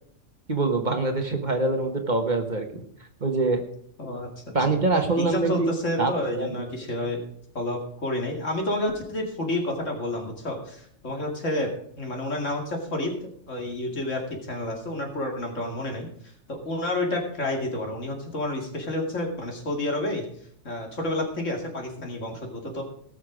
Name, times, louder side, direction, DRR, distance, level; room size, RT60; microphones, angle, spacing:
voice 1, 0.5-2.8 3.2-3.6 4.5-5.7 6.0-6.1 6.4-6.5, right 3 dB, 40° right, 4 dB, 1.3 m, -24 dB
voice 2, 5.2-7.2 7.5-11.7 12.0-16.1 16.5-20.2 20.6-22.8, left 1 dB, 75° left, 1 dB, 2.7 m, -29 dB
18.5 x 6.3 x 5.0 m, 0.67 s
omnidirectional pair, 1.3 m